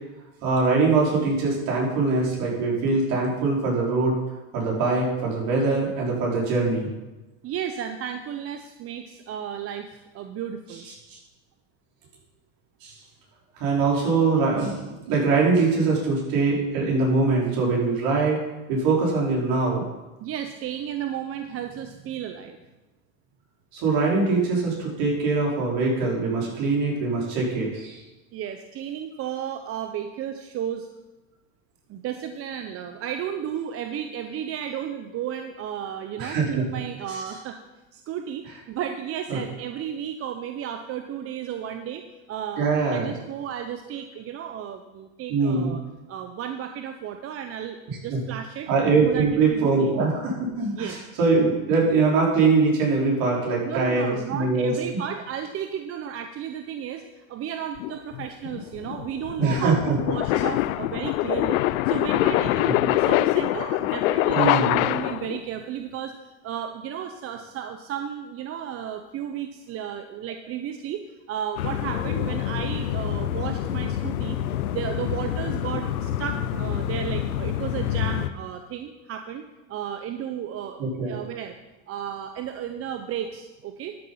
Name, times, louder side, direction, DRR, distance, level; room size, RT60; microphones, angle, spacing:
voice 1, 0.4-4.2 4.5-6.9 11.1-11.2 12.8-13.0 13.6-18.4 18.7-19.8 23.7-28.0 36.2-36.6 37.1-37.2 39.3-39.4 42.6-43.1 45.3-45.8 48.1-48.2 48.7-54.7 59.4-59.9 64.3-64.8 80.8-81.1, right 3 dB, 50° right, -3 dB, 4.6 m, -23 dB
voice 2, 7.4-10.9 20.2-22.6 28.3-30.9 31.9-37.6 37.9-45.8 46.1-48.7 49.0-49.9 50.8-51.0 53.6-71.0 71.3-74.4 74.7-80.8 81.1-81.6 81.9-84.0, right 9 dB, 30° right, 7 dB, 0.7 m, -33 dB
sound 1, 57.8-65.4, left 16 dB, 70° left, 0.6 m, -24 dB
sound 2, 71.6-78.3, left 10 dB, 90° left, 0.9 m, -28 dB
12.5 x 7.3 x 5.5 m, 1.1 s
hypercardioid pair, 115°, 43 cm